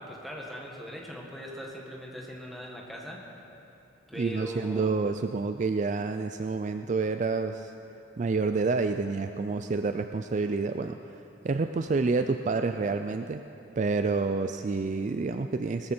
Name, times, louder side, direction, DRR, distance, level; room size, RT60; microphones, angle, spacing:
voice 1, 0.0-3.2 4.1-4.9, equal, ahead, -3 dB, 1.7 m, -40 dB
voice 2, 4.2-7.7 8.2-13.4 13.8-15.9, right 4 dB, 40° right, 8 dB, 0.3 m, -28 dB
19.0 x 14.0 x 4.4 m, 2.8 s
head